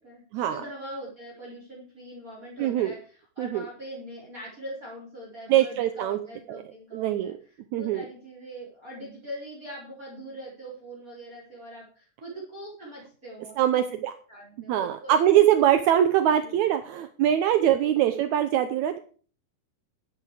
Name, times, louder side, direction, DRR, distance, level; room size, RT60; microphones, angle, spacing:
voice 1, 0.0-13.7 14.3-15.1 16.3-16.6 17.8-18.0, equal, 20° right, -4 dB, 4.7 m, -42 dB
voice 2, 2.6-2.9 3.4-3.6 5.5-6.2 6.5-6.6 6.9-7.3 7.7-8.0 13.6-14.1 14.7-19.0, right 11 dB, 75° right, 9 dB, 1.7 m, -23 dB
12.5 x 9.1 x 4.9 m, 0.42 s
omnidirectional pair, 4.1 m